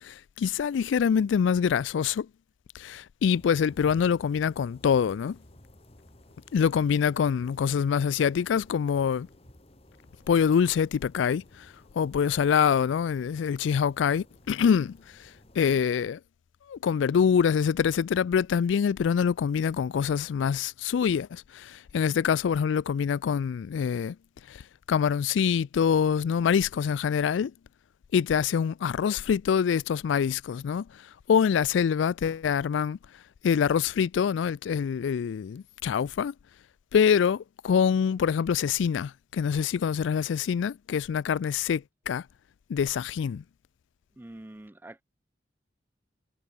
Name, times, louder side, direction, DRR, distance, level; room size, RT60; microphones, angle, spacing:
voice 1, 0.0-2.3 2.7-5.4 6.5-9.3 10.3-11.7 11.9-15.0 15.6-16.2 16.7-24.2 24.5-24.6 24.9-27.5 28.1-30.9 31.3-33.0 33.4-36.3 36.9-42.2 42.7-43.4, left 7 dB, 85° left, 0.3 m, -25 dB
sound 1, 3.2-15.8, left 1 dB, 35° left, 3.6 m, -55 dB
voice 2, 44.2-45.0, right 1 dB, 10° right, 0.4 m, -45 dB
head